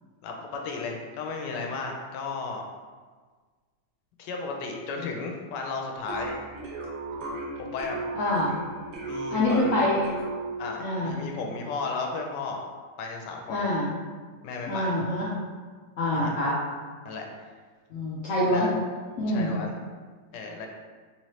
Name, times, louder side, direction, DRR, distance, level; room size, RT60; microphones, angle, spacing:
voice 1, 0.2-2.7 4.2-6.3 7.6-8.0 9.0-9.8 10.6-12.6 13.0-13.7 14.4-14.9 16.1-16.4 17.0-17.3 18.4-18.7 19.3-19.8 20.3-20.7, left 4 dB, 85° left, 1 dB, 1.2 m, -34 dB
sound 1, 6.1-10.9, right 2 dB, 75° right, 1.3 m, -36 dB
voice 2, 8.2-8.5 9.3-10.0 10.8-11.2 13.5-13.9 14.7-15.3 16.0-16.5 17.9-18.7 19.2-19.5, left 1 dB, 65° left, -7 dB, 0.8 m, -25 dB
3.6 x 3.1 x 2.8 m, 1.5 s
omnidirectional pair, 1.8 m